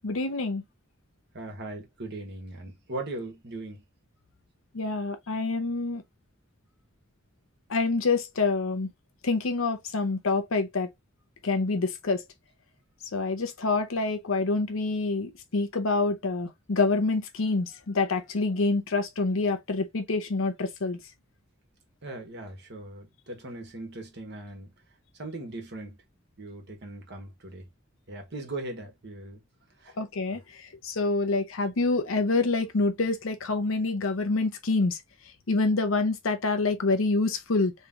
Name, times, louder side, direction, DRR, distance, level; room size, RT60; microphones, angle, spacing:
voice 1, 0.0-0.6 4.7-6.0 7.7-8.9 9.2-10.9 11.4-12.2 13.1-21.0 30.0-35.0 35.5-37.7, left 3 dB, 75° left, 0.7 m, -27 dB
voice 2, 1.3-3.8 22.0-24.7 25.2-25.9 26.4-27.7 28.1-29.4 29.8-29.9, right 2 dB, 55° right, 1.3 m, -39 dB
3.7 x 3.2 x 2.8 m
head